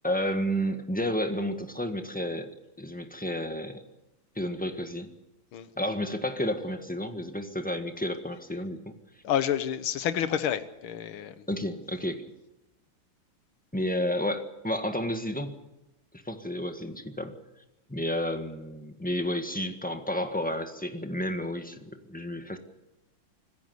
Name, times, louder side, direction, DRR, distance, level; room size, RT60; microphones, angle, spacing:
voice 1, 0.0-2.5 2.8-3.8 4.3-5.1 5.8-8.9 11.5-12.2 13.7-15.5 16.2-17.3 17.9-22.6, equal, 5° left, 1.4 m, -31 dB
voice 2, 9.2-11.5, left 9 dB, 85° left, 2.0 m, -29 dB
26.0 x 15.0 x 8.1 m
omnidirectional pair, 2.3 m